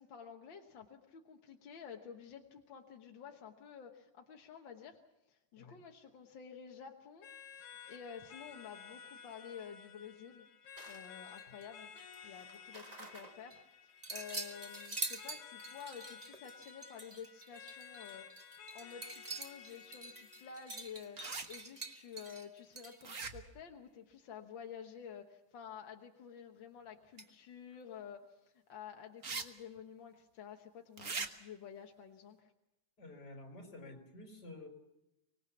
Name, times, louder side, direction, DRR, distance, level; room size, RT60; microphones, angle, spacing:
voice 1, 0.0-5.0 5.3-7.3 7.5-10.5 10.9-11.9 12.2-32.5, left 7 dB, 55° left, 3 dB, 1.4 m, -51 dB
sound 1, 7.2-22.2, left 7 dB, 70° left, 3.0 m, -54 dB
sound 2, 10.8-11.7 12.0-13.6 14.0-23.1, right 3 dB, 85° right, 0.3 m, -46 dB
sound 3, 21.2-21.5 23.0-23.6 27.2-27.3 29.2-29.4 29.8-29.9 31.0-31.3, right 4 dB, 45° right, 1.0 m, -40 dB
voice 2, 33.0-34.7, left 2 dB, 30° left, 4 dB, 4.4 m, -50 dB
25.0 x 19.5 x 7.1 m, 0.94 s
omnidirectional pair, 3.6 m